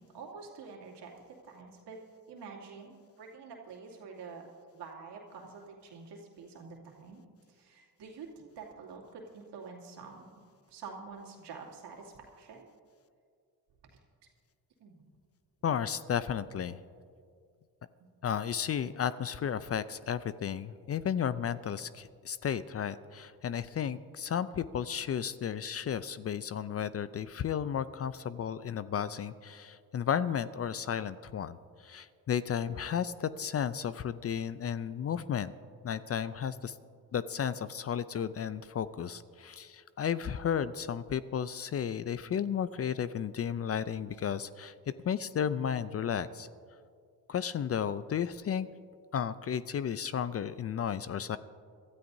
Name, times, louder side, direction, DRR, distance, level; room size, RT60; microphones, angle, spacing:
voice 1, 0.0-2.0 2.3-4.4 4.7-7.2 7.5-10.3 10.7-12.7 13.9-14.0 14.8-15.0 18.0-18.1, right 5 dB, 75° right, -1 dB, 2.6 m, -47 dB
voice 2, 15.6-16.8 18.2-35.5 35.8-36.8 37.1-44.7 45.0-46.5 47.3-48.7 49.1-51.4, left 8 dB, 35° left, 15 dB, 0.5 m, -33 dB
23.5 x 13.0 x 2.7 m, 2.2 s
supercardioid pair, 80°, 41 cm